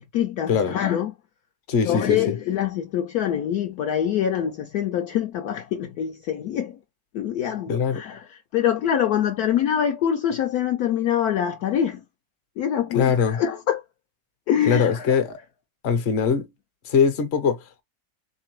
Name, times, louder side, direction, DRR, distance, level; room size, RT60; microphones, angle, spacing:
voice 1, 0.1-1.1 1.8-6.8 7.1-12.0 12.6-13.8 14.5-15.2, left 10 dB, 70° left, 1.0 m, -25 dB
voice 2, 1.7-2.3 7.7-8.0 12.9-13.4 14.7-15.4 15.8-16.5 16.8-17.8, left 6 dB, 45° left, 0.9 m, -22 dB
3.7 x 3.1 x 3.0 m
omnidirectional pair, 1.9 m